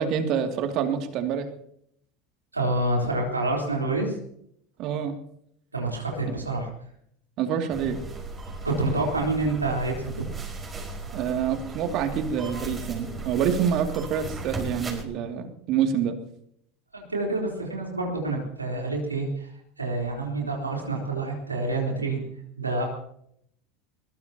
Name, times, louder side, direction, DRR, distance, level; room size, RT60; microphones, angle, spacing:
voice 1, 0.0-1.5 4.8-5.2 6.3-6.4 7.4-8.0 11.1-16.2, right 8 dB, 50° right, 5 dB, 2.5 m, -27 dB
voice 2, 2.5-4.1 5.7-6.7 8.6-10.1 16.9-19.5 19.8-22.3 22.6-22.8, right 2 dB, 90° right, -1 dB, 3.8 m, -27 dB
sound 1, 7.7-15.0, right 3 dB, 20° right, 4.9 m, -36 dB
21.5 x 21.5 x 2.9 m, 0.71 s
figure-of-eight pair, 75°, 0 cm